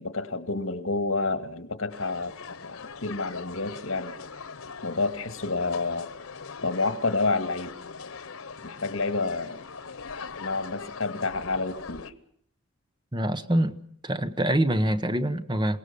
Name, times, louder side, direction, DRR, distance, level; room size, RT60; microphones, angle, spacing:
voice 1, 0.0-4.1 4.8-6.1 6.6-7.7 8.6-9.6 10.4-12.1, left 3 dB, 75° left, 2.1 m, -29 dB
sound 1, 1.9-12.1, left 5 dB, 90° left, 1.2 m, -41 dB
voice 2, 13.1-13.8 14.0-15.8, right 1 dB, 20° right, 1.0 m, -25 dB
28.5 x 18.5 x 7.0 m
head